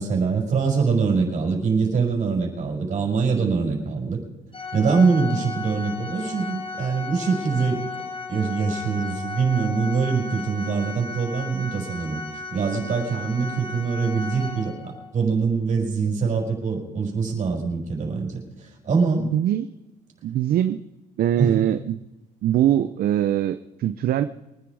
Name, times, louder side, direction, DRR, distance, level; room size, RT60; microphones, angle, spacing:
voice 1, 0.0-4.2 4.7-7.8 8.3-12.2 12.5-19.3 21.4-21.7, right 5 dB, 45° right, 0 dB, 5.6 m, -24 dB
Organ, 4.5-15.1, left 4 dB, 30° left, 2.0 m, -35 dB
voice 2, 19.2-19.7 20.2-20.8 21.2-22.0 22.4-24.2, right 11 dB, 60° right, 10 dB, 0.7 m, -22 dB
23.5 x 10.0 x 4.9 m, 0.98 s
cardioid pair, 110°, 17 cm